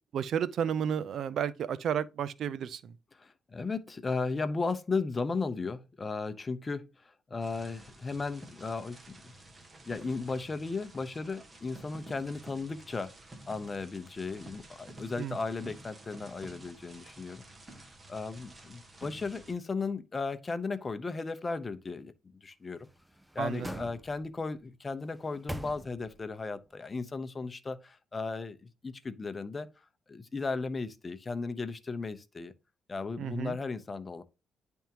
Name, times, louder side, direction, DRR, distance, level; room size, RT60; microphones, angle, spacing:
voice 1, 0.1-2.9 15.2-15.4 23.4-23.7 33.2-33.6, right 8 dB, 65° right, 0.4 m, -32 dB
voice 2, 3.1-9.2 9.9-13.1 13.5-17.4 17.7-17.8 18.1-22.1 22.4-22.9 23.3-29.7 30.1-32.5 32.9-34.2, left 4 dB, 30° left, 0.7 m, -35 dB
sound 1, 7.4-19.5, right 1 dB, 25° right, 1.3 m, -51 dB
sound 2, 22.7-24.5 25.0-26.3 26.7-26.8, equal, 5° right, 0.5 m, -44 dB
10.0 x 3.5 x 2.9 m
cardioid pair, 90°, 0 cm